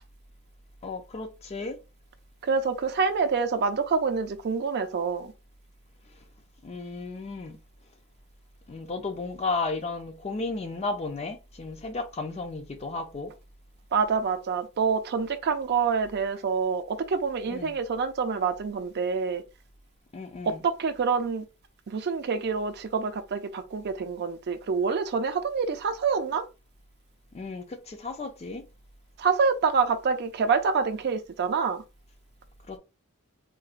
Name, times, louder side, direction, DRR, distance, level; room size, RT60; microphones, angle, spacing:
voice 1, 0.8-1.8 6.1-6.2 6.6-7.6 8.7-13.3 17.5-17.7 20.1-20.6 27.3-28.7 32.7-32.8, left 3 dB, 30° left, 0.4 m, -34 dB
voice 2, 2.4-5.3 13.9-19.4 20.4-21.4 21.9-26.4 29.2-31.8, right 5 dB, 50° right, 0.4 m, -26 dB
3.8 x 2.1 x 2.4 m
head